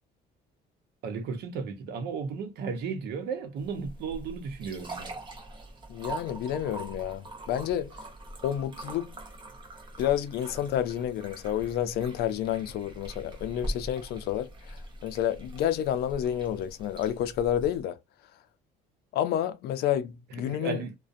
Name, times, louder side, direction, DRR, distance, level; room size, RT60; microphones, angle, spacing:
voice 1, 1.0-5.3 20.4-20.9, right 5 dB, 75° right, 0.7 m, -34 dB
sound 1, 3.6-17.8, right 1 dB, 30° right, 0.8 m, -42 dB
voice 2, 5.9-7.9 8.4-9.2 10.0-14.8 15.0-18.0 19.1-20.8, left 10 dB, 70° left, 0.4 m, -29 dB
2.4 x 2.1 x 2.4 m
cardioid pair, 110°, 17 cm